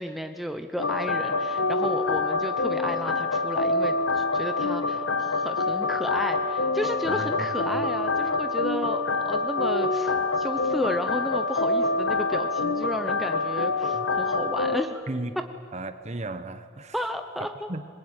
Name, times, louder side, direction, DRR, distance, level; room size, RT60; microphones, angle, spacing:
voice 1, 0.0-15.4 16.9-17.9, equal, ahead, 6 dB, 0.8 m, -33 dB
sound 1, 0.8-14.9, left 3 dB, 75° left, 1.3 m, -26 dB
voice 2, 7.0-7.5 7.7-7.8 13.9-14.1 15.1-15.4 15.7-16.9 17.4-17.8, right 2 dB, 35° right, 10 dB, 1.2 m, -35 dB
25.5 x 21.5 x 9.0 m, 2.2 s
head